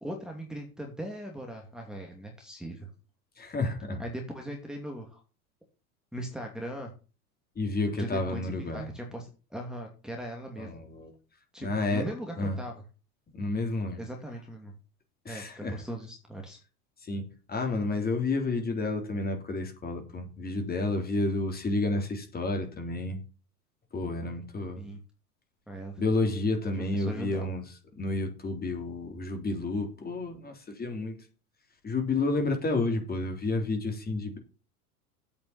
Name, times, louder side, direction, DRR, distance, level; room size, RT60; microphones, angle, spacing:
voice 1, 0.0-2.9 4.0-5.2 6.1-6.9 8.0-10.7 11.5-12.8 14.0-14.7 15.3-16.6 24.8-25.0 25.7-26.0 26.9-27.5, right 1 dB, ahead, 2.7 m, -39 dB
voice 2, 3.4-4.0 7.6-8.9 10.6-11.1 11.6-12.1 12.4-12.6 13.3-14.0 15.3-15.8 17.0-17.2 17.5-23.2 23.9-24.9 26.0-27.6 27.9-31.2 31.8-34.4, left 2 dB, 20° left, 3.5 m, -30 dB
8.6 x 7.1 x 8.2 m
hypercardioid pair, 95°, 44 cm